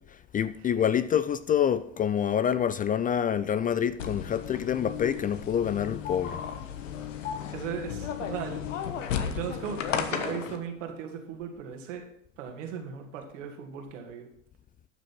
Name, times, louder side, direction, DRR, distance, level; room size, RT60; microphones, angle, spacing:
voice 1, 0.3-6.4, left 9 dB, 25° left, 0.4 m, -27 dB
sound 1, 4.0-10.6, left 8 dB, 80° left, 1.3 m, -34 dB
voice 2, 7.5-8.6 9.0-12.1 12.4-14.3, right 7 dB, 75° right, 2.4 m, -37 dB
12.0 x 6.3 x 5.9 m
hypercardioid pair, 85°, 38 cm